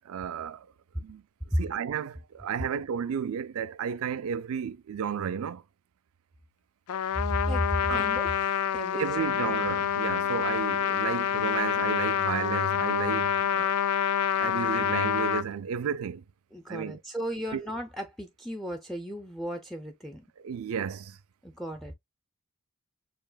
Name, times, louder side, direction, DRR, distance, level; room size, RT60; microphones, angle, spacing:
voice 1, 0.1-0.7 1.0-1.2 1.6-5.6 7.9-8.0 9.0-13.7 14.4-16.2 16.7-17.0 17.5-17.6 20.4-21.2, right 7 dB, 70° right, 0.4 m, -32 dB
Trumpet, 6.9-15.4, left 9 dB, 90° left, 0.4 m, -27 dB
voice 2, 7.1-9.4 16.5-20.2 21.4-21.9, equal, ahead, 0.5 m, -34 dB
6.9 x 2.9 x 2.2 m
head